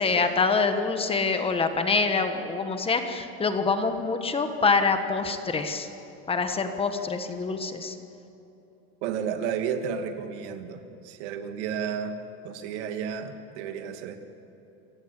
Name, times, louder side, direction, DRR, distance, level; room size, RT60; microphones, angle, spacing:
voice 1, 0.0-5.9 6.3-7.9, left 4 dB, 15° left, 7 dB, 1.4 m, -25 dB
voice 2, 9.0-12.2 12.4-14.2, right 7 dB, 80° right, 7 dB, 2.0 m, -32 dB
28.0 x 16.0 x 8.3 m, 2.9 s
cardioid pair, 155°, 34 cm